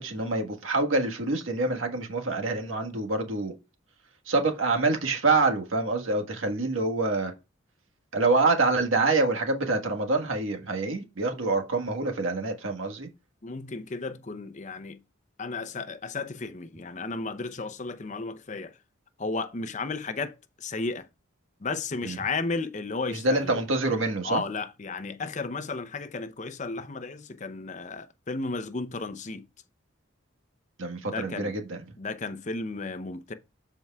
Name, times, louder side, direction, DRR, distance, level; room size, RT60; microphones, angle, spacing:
voice 1, 0.0-3.5 4.2-7.3 8.1-13.1 22.0-22.2 23.1-24.4 30.8-31.8, right 3 dB, 80° right, 1.5 m, -26 dB
voice 2, 13.4-15.0 15.4-18.8 19.2-21.1 21.6-23.6 24.2-29.4 31.0-31.5 32.0-33.3, left 3 dB, 35° left, 0.6 m, -34 dB
13.0 x 4.6 x 2.3 m
head